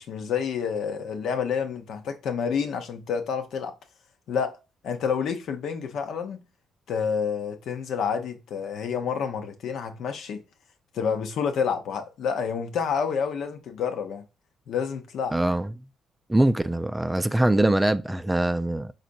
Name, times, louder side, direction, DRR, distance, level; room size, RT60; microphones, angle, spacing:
voice 1, 0.0-3.7 4.3-4.6 4.8-6.4 6.9-10.4 10.9-14.2 14.7-15.4, left 6 dB, 70° left, 0.8 m, -29 dB
voice 2, 15.3-15.7 16.3-18.9, right 1 dB, 10° right, 0.4 m, -23 dB
4.3 x 4.0 x 2.6 m
cardioid pair, 90°, 0 cm